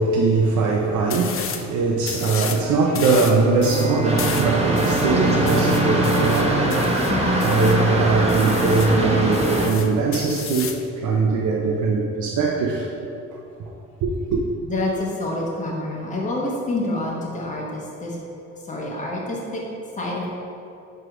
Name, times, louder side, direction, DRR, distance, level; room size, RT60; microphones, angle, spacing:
voice 1, 0.0-12.9 14.0-14.4, right 4 dB, 80° right, -2 dB, 0.7 m, -21 dB
sound 1, 1.1-1.7 2.0-2.6 2.9-7.8 8.3-9.0 9.3-10.9, left 7 dB, 45° left, 0.5 m, -33 dB
Bowed string instrument, 3.4-8.4, right 4 dB, 5° right, 1.4 m, -27 dB
sound 2, 4.0-9.7, right 1 dB, 20° right, 0.9 m, -22 dB
voice 2, 7.1-7.4 14.6-18.2 18.7-19.6 20.0-20.3, left 2 dB, 25° left, -3 dB, 1.0 m, -27 dB
4.9 x 4.7 x 5.0 m, 2.7 s
cardioid pair, 90°, 30 cm